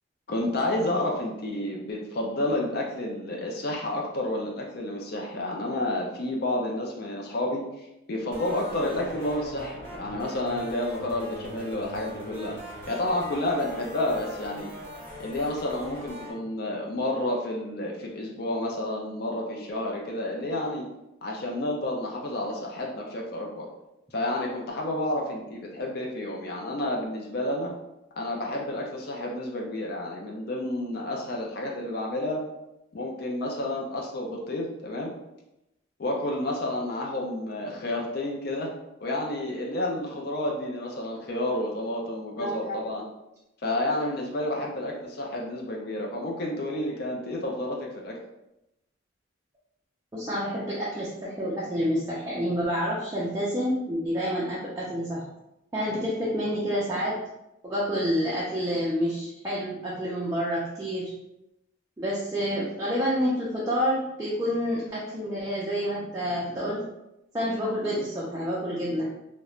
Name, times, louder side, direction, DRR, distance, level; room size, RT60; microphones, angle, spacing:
voice 1, 0.3-14.7 15.2-20.8 21.2-23.7 24.1-27.7 28.2-32.4 32.9-35.1 36.0-38.7 39.0-43.0 43.6-48.2, left 1 dB, 50° left, -1 dB, 0.4 m, -30 dB
sound 1, 8.3-16.3, equal, 15° left, 1.2 m, -41 dB
voice 2, 42.4-42.8 50.1-55.3 55.7-57.2 57.6-61.1 62.0-66.8 67.3-69.1, equal, 15° right, -7 dB, 0.4 m, -28 dB
3.0 x 2.1 x 2.3 m, 0.89 s
head